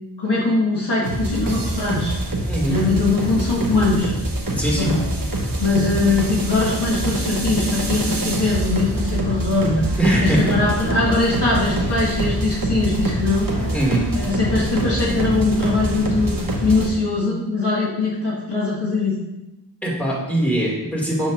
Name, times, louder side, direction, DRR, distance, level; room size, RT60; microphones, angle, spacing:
voice 1, 0.2-2.1 2.7-4.1 4.8-5.0 5.6-9.8 10.2-13.7 14.1-19.1, left 3 dB, 70° left, -6 dB, 1.9 m, -21 dB
sound 1, 1.0-16.9, right 1 dB, 55° right, 1.1 m, -25 dB
voice 2, 4.5-4.9 10.0-10.6 13.7-14.1 19.8-21.3, right 1 dB, 5° left, -5 dB, 2.3 m, -21 dB
7.0 x 6.3 x 2.5 m, 0.96 s
wide cardioid pair, 60°, 42 cm